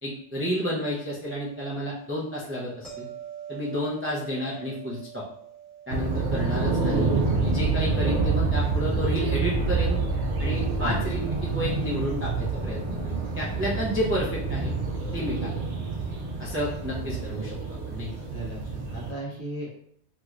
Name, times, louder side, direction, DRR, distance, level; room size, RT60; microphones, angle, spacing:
voice 1, 0.0-3.1 3.5-5.2 5.9-7.1 7.4-10.0 10.4-14.7 15.1-15.4 16.4-18.1, equal, 20° right, -6 dB, 0.4 m, -31 dB
sound 1, 2.8-9.8 15.1-15.3, right 9 dB, ahead, 1.1 m, -46 dB
sound 2, 5.9-19.1, right 4 dB, 75° right, 0.9 m, -27 dB
voice 2, 18.3-19.7, right 1 dB, 40° left, -5 dB, 0.9 m, -34 dB
3.1 x 2.8 x 2.4 m, 0.68 s
omnidirectional pair, 1.1 m